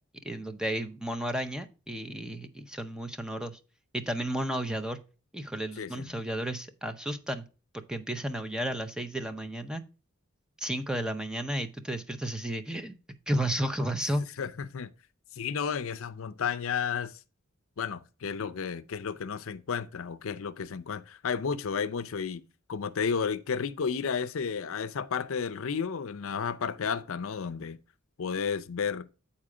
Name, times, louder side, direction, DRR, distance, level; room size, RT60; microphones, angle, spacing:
voice 1, 0.2-3.6 3.9-5.0 5.3-7.5 7.9-9.8 10.6-12.9 13.3-14.2, right 1 dB, 5° right, 0.6 m, -32 dB
voice 2, 5.8-6.1 14.4-14.9 15.4-17.1 17.8-22.4 22.7-27.8 28.2-29.0, left 6 dB, 65° left, 0.5 m, -32 dB
8.7 x 4.3 x 4.8 m
head